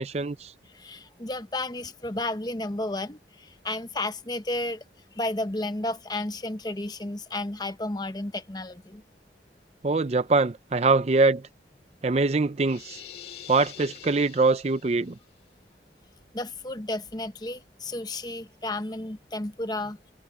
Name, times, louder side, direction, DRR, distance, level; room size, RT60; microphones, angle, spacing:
voice 1, 0.0-0.5 9.8-11.4 12.0-13.0 13.5-15.2, right 3 dB, 35° right, 0.5 m, -23 dB
voice 2, 0.7-4.8 5.1-9.0 16.3-20.0, left 2 dB, 20° left, 1.0 m, -32 dB
sound 1, 12.6-15.2, left 9 dB, 60° left, 2.2 m, -45 dB
head